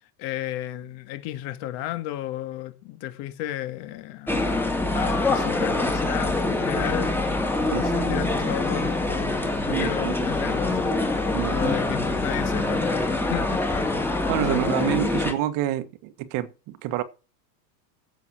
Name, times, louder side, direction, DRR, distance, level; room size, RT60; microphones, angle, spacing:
voice 1, 0.2-14.0 14.4-15.3, left 13 dB, 50° left, 2.1 m, -34 dB
sound 1, 4.3-15.3, left 2 dB, 5° left, 2.0 m, -25 dB
voice 2, 7.7-8.2 9.7-10.3 11.3-11.8 14.3-17.0, right 13 dB, 40° right, 1.5 m, -28 dB
16.0 x 7.0 x 6.1 m
supercardioid pair, 145°, 48 cm